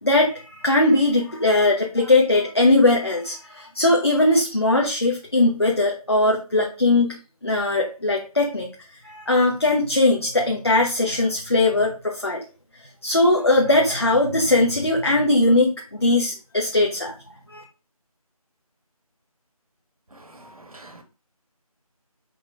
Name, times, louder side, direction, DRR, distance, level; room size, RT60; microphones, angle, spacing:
voice 1, 0.0-7.1 7.4-8.7 9.0-12.4 13.0-15.7 16.0-17.1 17.5-17.6, left 2 dB, 40° left, 1.0 m, -20 dB
voice 2, 20.3-21.0, right 2 dB, 70° right, 1.9 m, -45 dB
5.5 x 3.8 x 4.8 m
figure-of-eight pair, 175°, 19 cm